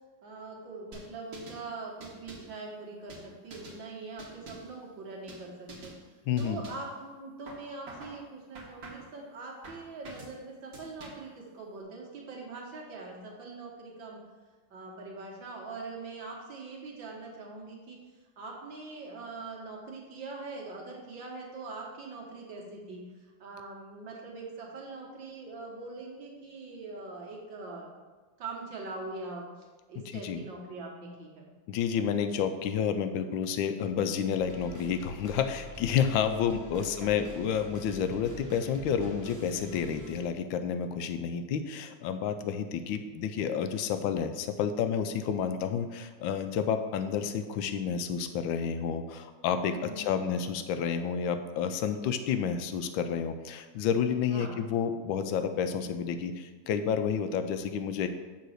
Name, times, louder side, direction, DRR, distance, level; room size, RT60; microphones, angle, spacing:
voice 1, 0.2-5.9 6.4-14.2 14.7-18.0 18.4-23.0 23.4-27.9 28.4-31.5 37.0-37.2 49.8-50.5 54.3-54.5, right 3 dB, 75° right, -1 dB, 2.0 m, -42 dB
sound 1, 0.9-1.6 2.0-2.6 3.1-3.8 4.2-4.8 5.3-5.4 5.7-6.0 6.4-6.9 7.5-8.2 8.5-9.2 9.6-10.3 10.7-11.3, right 2 dB, 55° right, 1.7 m, -47 dB
voice 2, 6.3-6.6 30.1-30.4 31.7-58.1, left 7 dB, 90° left, 9 dB, 1.4 m, -30 dB
sound 2, 34.4-40.2, right 1 dB, 20° right, 0.5 m, -46 dB
6.7 x 4.0 x 6.5 m, 1.3 s
omnidirectional pair, 2.0 m